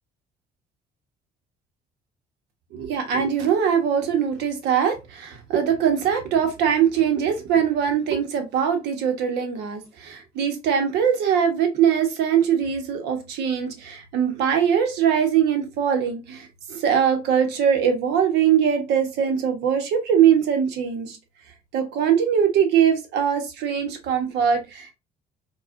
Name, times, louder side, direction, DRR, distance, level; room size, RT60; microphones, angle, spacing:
voice 1, 2.7-21.2 21.7-24.9, right 8 dB, 85° right, 1.0 m, -22 dB
4.8 x 2.3 x 2.6 m
cardioid pair, 110°, 17 cm